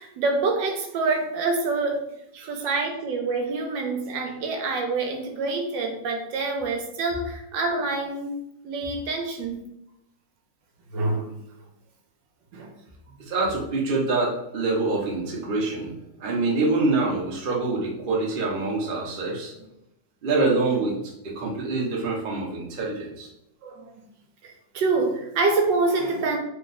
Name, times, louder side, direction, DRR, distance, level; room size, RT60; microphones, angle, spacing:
voice 1, 0.0-2.0 2.5-8.3 8.6-9.6 10.9-11.3 12.5-12.7 13.1-13.2 18.5-18.9 23.6-23.9 24.4-26.4, right 3 dB, 80° right, 3 dB, 1.3 m, -26 dB
voice 2, 13.3-15.9 16.2-19.5 20.2-20.9 21.4-23.3, right 3 dB, 45° right, -2 dB, 0.7 m, -25 dB
3.6 x 2.3 x 4.0 m, 0.81 s
omnidirectional pair, 2.0 m